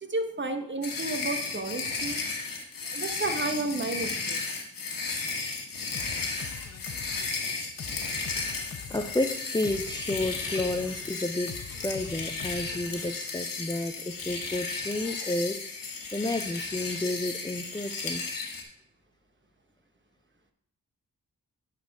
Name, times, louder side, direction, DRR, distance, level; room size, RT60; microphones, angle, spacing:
voice 1, 0.0-2.2 2.9-4.5 17.8-18.0, right 2 dB, 35° right, 6 dB, 1.1 m, -32 dB
sound 1, 0.8-18.6, left 4 dB, 80° left, 1.4 m, -34 dB
sound 2, 5.9-13.1, left 6 dB, 50° left, 0.9 m, -44 dB
voice 2, 8.9-11.6 11.8-18.2, left 2 dB, 15° left, 6 dB, 0.5 m, -31 dB
10.0 x 4.2 x 4.7 m, 0.71 s
cardioid pair, 55°, 33 cm